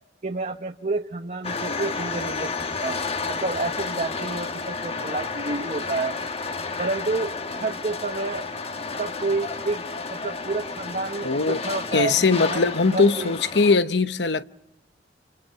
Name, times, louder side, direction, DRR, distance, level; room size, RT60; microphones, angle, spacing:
voice 1, 0.2-2.5 2.8-6.2 6.8-8.5 9.0-9.8 10.1-13.3, right 3 dB, 45° right, 1.0 m, -29 dB
sound 1, 1.4-13.8, left 4 dB, 35° left, 1.3 m, -31 dB
voice 2, 11.2-11.6 11.9-14.4, left 4 dB, 80° left, 1.0 m, -20 dB
29.5 x 29.5 x 5.8 m
head